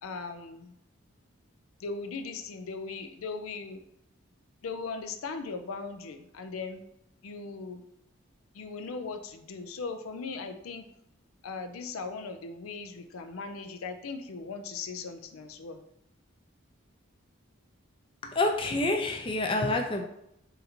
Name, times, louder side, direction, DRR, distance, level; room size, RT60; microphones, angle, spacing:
voice 1, 0.0-0.7 1.8-3.8 4.6-6.8 7.2-7.8 8.5-10.9 11.4-15.8, left 4 dB, 85° left, 7 dB, 0.5 m, -38 dB
voice 2, 18.2-20.0, left 2 dB, 25° left, 3 dB, 0.4 m, -27 dB
3.8 x 2.6 x 4.2 m, 0.78 s
head